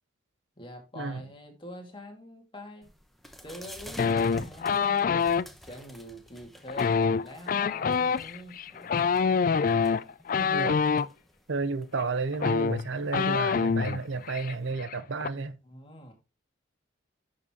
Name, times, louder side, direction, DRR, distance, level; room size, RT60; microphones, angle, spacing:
voice 1, 0.6-2.9 3.4-5.2 5.6-9.2 15.6-16.1, left 1 dB, 25° left, 2.1 m, -45 dB
sound 1, 2.8-14.7, equal, ahead, 0.9 m, -50 dB
sound 2, 4.0-5.5 6.7-11.1 12.0-12.1 12.3-14.0 14.3-14.5 14.8-15.3, left 5 dB, 45° left, 0.3 m, -25 dB
voice 2, 10.4-10.8 11.5-15.6, right 4 dB, 70° right, 0.7 m, -32 dB
10.5 x 6.5 x 2.9 m
head